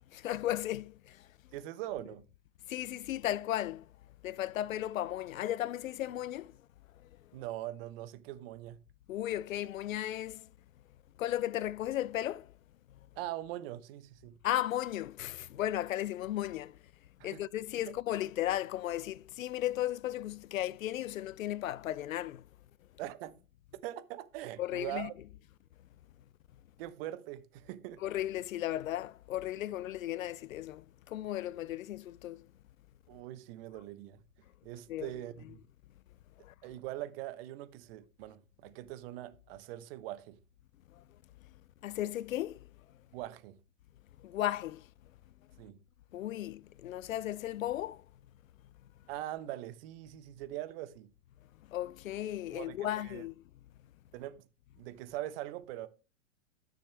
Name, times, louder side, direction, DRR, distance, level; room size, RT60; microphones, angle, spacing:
voice 1, 0.1-1.2 2.7-3.8 4.2-6.5 9.1-10.5 11.2-12.5 14.4-16.8 17.2-22.4 24.6-25.1 28.0-32.5 34.9-35.1 36.4-36.5 41.8-42.6 44.2-44.8 46.1-48.0 51.7-53.3, left 13 dB, 85° left, 0.5 m, -35 dB
voice 2, 1.5-2.2 7.3-8.8 13.2-14.4 17.2-17.4 17.9-18.0 23.0-23.4 23.8-25.1 26.8-28.0 33.1-34.2 34.6-35.6 36.6-40.4 43.1-43.6 45.6-45.8 49.1-51.1 52.5-53.2 54.1-54.4 54.8-55.9, right 14 dB, 45° right, 1.0 m, -42 dB
13.0 x 6.4 x 3.4 m
hypercardioid pair, 125°, 39 cm